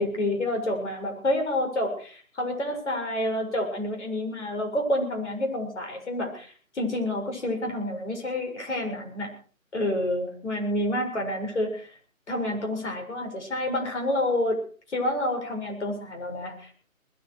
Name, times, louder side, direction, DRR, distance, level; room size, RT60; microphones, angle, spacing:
voice 1, 0.0-9.3 9.7-11.9 12.3-14.6 14.9-16.8, left 1 dB, 55° left, 2 dB, 7.2 m, -28 dB
20.5 x 13.5 x 4.9 m, 0.42 s
figure-of-eight pair, 165°, 42 cm